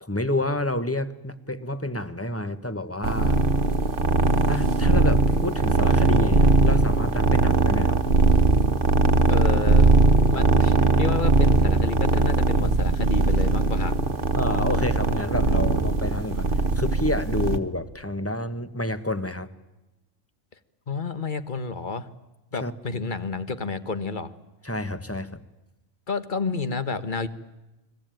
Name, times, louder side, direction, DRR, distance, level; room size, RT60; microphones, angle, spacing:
voice 1, 0.0-3.4 4.5-8.0 14.3-16.5 16.7-19.5 22.6-22.7 24.6-25.4, left 1 dB, 10° left, 12 dB, 1.1 m, -29 dB
sound 1, 3.0-17.6, right 3 dB, 45° right, 1.5 m, -20 dB
voice 2, 9.3-9.9 10.3-14.0 20.9-22.1 22.5-24.3 26.1-27.3, left 4 dB, 40° left, 12 dB, 1.4 m, -30 dB
29.5 x 21.5 x 9.1 m, 1.0 s
omnidirectional pair, 1.3 m